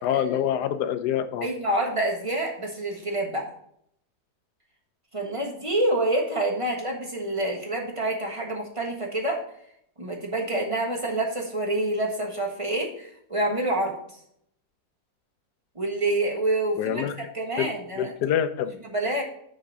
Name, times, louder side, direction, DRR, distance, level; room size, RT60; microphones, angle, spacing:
voice 1, 0.0-1.5 16.8-17.3 17.6-18.7, left 9 dB, 90° left, 11 dB, 1.2 m, -26 dB
voice 2, 1.4-3.5 5.1-9.4 10.0-14.0 15.7-17.0 17.3-18.1 18.8-19.2, right 1 dB, 20° right, 1 dB, 1.4 m, -27 dB
6.4 x 5.8 x 5.9 m, 0.71 s
omnidirectional pair, 1.7 m